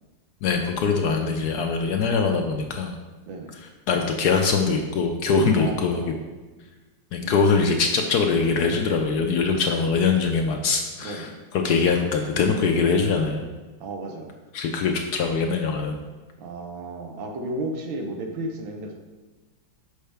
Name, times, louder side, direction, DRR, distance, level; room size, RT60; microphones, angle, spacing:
voice 1, 0.4-3.0 3.9-6.0 7.1-11.3 11.5-13.4 14.5-16.0, left 5 dB, 70° left, 3 dB, 1.0 m, -22 dB
voice 2, 5.6-6.1 7.2-7.7 11.0-11.4 13.8-14.4 16.4-19.0, right 2 dB, 85° right, 3 dB, 1.6 m, -33 dB
6.5 x 5.6 x 3.4 m, 1.2 s
omnidirectional pair, 2.1 m